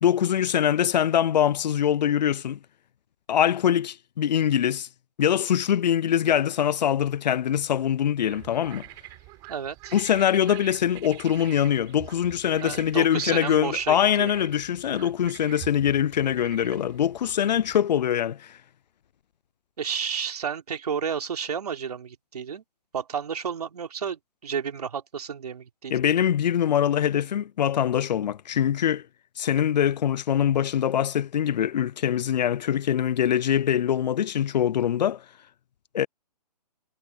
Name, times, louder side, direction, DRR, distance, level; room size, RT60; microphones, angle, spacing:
voice 1, 0.0-2.6 3.3-4.9 5.2-8.8 9.9-18.6 25.9-29.0 29.4-35.2 35.9-36.1, left 9 dB, 85° left, 0.4 m, -23 dB
sound 1, 8.3-17.8, right 22 dB, 20° right, 5.1 m, -46 dB
voice 2, 9.5-9.9 12.6-14.3 19.8-22.6 22.9-25.9, right 7 dB, 65° right, 3.4 m, -31 dB
hypercardioid pair, 165°, 21 cm